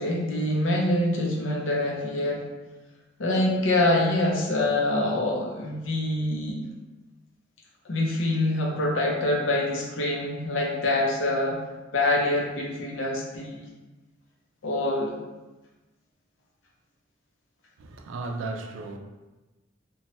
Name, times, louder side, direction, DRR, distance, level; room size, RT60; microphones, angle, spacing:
voice 1, 0.0-2.4 3.2-6.6 7.8-11.6 11.9-13.7 14.6-15.2, left 1 dB, 85° left, 0.6 m, -25 dB
voice 2, 17.8-19.0, right 3 dB, 90° right, 0.4 m, -35 dB
2.9 x 2.2 x 2.9 m
head